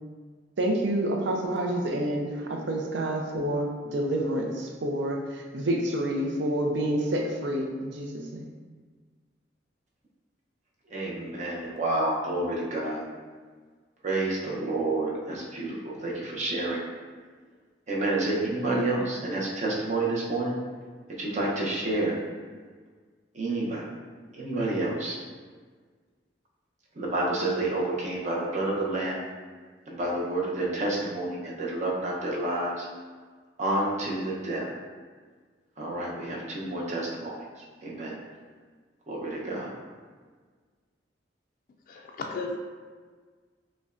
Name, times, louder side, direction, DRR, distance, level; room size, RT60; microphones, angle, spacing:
voice 1, 0.6-8.5, right 1 dB, 70° right, 1 dB, 0.5 m, -28 dB
voice 2, 10.9-13.1 14.0-16.8 17.9-20.6 21.2-22.2 23.3-23.8 24.3-25.2 26.9-29.2 29.9-32.9 33.6-34.7 35.8-37.5 37.8-38.2 39.1-39.7, right 2 dB, 40° right, -4 dB, 0.7 m, -29 dB
voice 3, 41.9-42.6, left 3 dB, 50° left, 1 dB, 0.3 m, -34 dB
5.1 x 2.2 x 2.5 m, 1.5 s
head